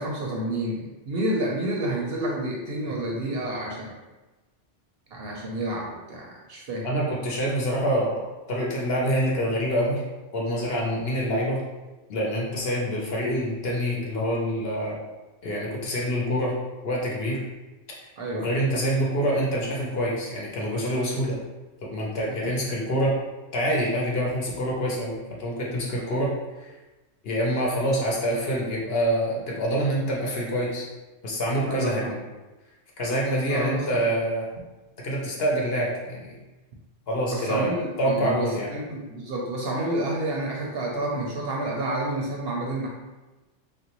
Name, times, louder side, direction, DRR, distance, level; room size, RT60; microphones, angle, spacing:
voice 1, 0.0-4.0 5.1-6.9 18.2-18.5 22.4-22.6 25.9-26.1 31.7-32.1 33.5-33.8 37.3-42.9, right 1 dB, 65° right, -2 dB, 0.7 m, -29 dB
voice 2, 6.8-8.2 8.5-10.0 10.3-11.6 12.1-15.0 15.4-16.5 16.8-17.4 18.0-21.4 21.8-23.2 23.5-26.3 26.6-26.7 27.2-30.9 31.2-32.1 33.0-34.5 35.0-36.3 37.1-38.7, equal, 60° left, -3 dB, 0.8 m, -26 dB
3.2 x 2.5 x 2.9 m, 1.1 s
omnidirectional pair, 1.3 m